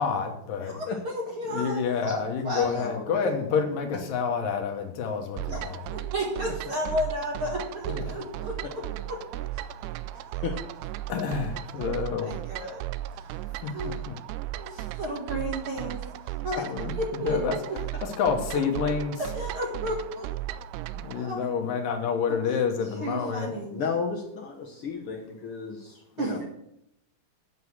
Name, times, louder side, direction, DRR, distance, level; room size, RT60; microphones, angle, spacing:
voice 1, 0.0-0.8 1.5-5.8 7.9-8.0 11.1-12.3 13.6-13.7 14.1-14.2 16.6-17.6 18.0-19.2 21.0-23.5, left 6 dB, 65° left, 4 dB, 2.6 m, -28 dB
voice 2, 0.7-2.9 5.5-5.6 5.9-8.6 9.1-9.2 12.2-12.8 13.1-13.3 13.7-13.9 14.6-16.0 16.2-16.6 17.2-17.4 18.8-18.9 19.2-20.4 21.1-21.5 22.3-22.5 23.0-23.7 26.2-26.5, equal, 45° right, -1 dB, 1.9 m, -33 dB
voice 3, 2.8-3.6 10.1-10.5 16.6-16.7 23.7-26.5, left 5 dB, 90° left, 0 dB, 1.2 m, -34 dB
sound 1, 5.4-21.2, right 14 dB, 85° right, 2.5 m, -36 dB
8.4 x 7.8 x 7.9 m, 0.78 s
omnidirectional pair, 4.6 m